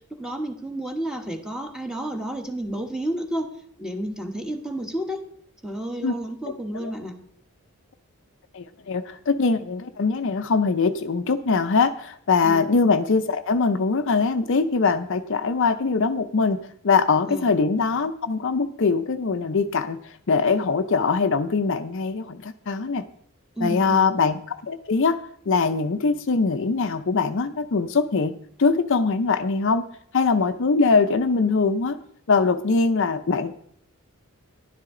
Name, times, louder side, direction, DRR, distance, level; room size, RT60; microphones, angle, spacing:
voice 1, 0.2-3.5 3.8-5.2 5.6-7.1 12.4-12.7 17.3-17.5 23.6-24.1, right 1 dB, 5° right, 4 dB, 1.2 m, -31 dB
voice 2, 6.5-6.9 8.5-23.0 23.6-25.2 25.5-28.3 28.6-29.8 30.1-32.0 32.3-33.6, left 4 dB, 60° left, 8 dB, 0.6 m, -22 dB
11.0 x 10.5 x 3.8 m, 0.65 s
head